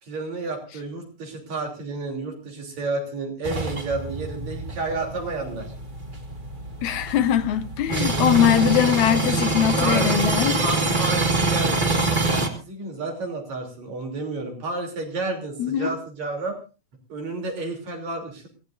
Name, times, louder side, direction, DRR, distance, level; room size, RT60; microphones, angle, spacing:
voice 1, 0.0-5.7 8.6-8.8 9.7-10.2 10.6-16.6 17.1-18.5, right 3 dB, 65° right, 4.6 m, -31 dB
sound 1, 3.4-12.5, right 3 dB, 20° right, 1.4 m, -25 dB
voice 2, 6.8-10.6 15.6-15.9, left 10 dB, 75° left, 2.3 m, -21 dB
26.5 x 16.0 x 2.6 m
omnidirectional pair, 3.4 m